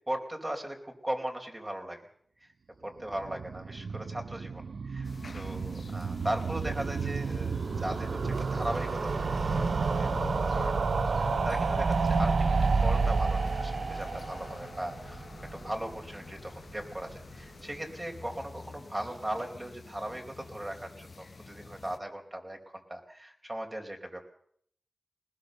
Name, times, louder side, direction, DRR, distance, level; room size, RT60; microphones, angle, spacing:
voice 1, 0.1-2.0 2.8-15.3 15.5-24.3, right 1 dB, 25° right, 2 dB, 4.5 m, -38 dB
sound 1, 3.0-16.1 16.4-16.5 16.7-16.8 17.0-17.1, right 4 dB, 80° right, 0.8 m, -30 dB
sound 2, 5.0-22.0, left 3 dB, 60° left, 1.1 m, -45 dB
20.5 x 19.5 x 6.7 m, 0.66 s
cardioid pair, 50°, 0 cm